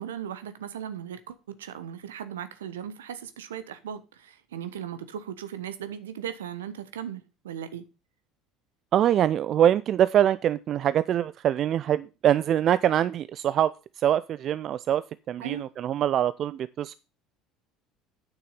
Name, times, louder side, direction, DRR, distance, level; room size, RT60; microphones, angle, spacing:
voice 1, 0.0-7.8 15.4-15.7, right 9 dB, 75° right, 1.1 m, -37 dB
voice 2, 8.9-16.9, right 10 dB, 45° right, 0.4 m, -24 dB
9.2 x 6.8 x 5.5 m
figure-of-eight pair, 65°, 0 cm